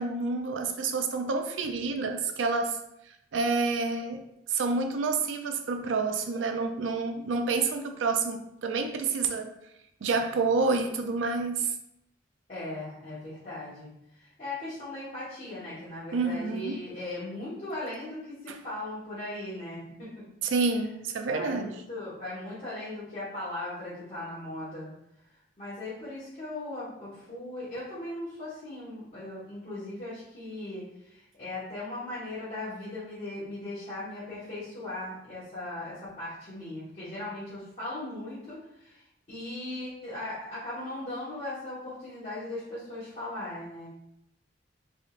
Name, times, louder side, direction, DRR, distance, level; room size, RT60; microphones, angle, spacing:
voice 1, 0.0-2.8 3.3-4.2 4.5-9.5 10.0-11.7 16.1-16.8 18.5-18.6 20.4-21.7, right 4 dB, 85° right, 6 dB, 0.4 m, -28 dB
voice 2, 12.5-20.1 21.3-24.9 25.3-39.0 39.3-43.9, left 2 dB, 40° left, -13 dB, 1.4 m, -38 dB
3.7 x 3.5 x 2.5 m, 0.81 s
head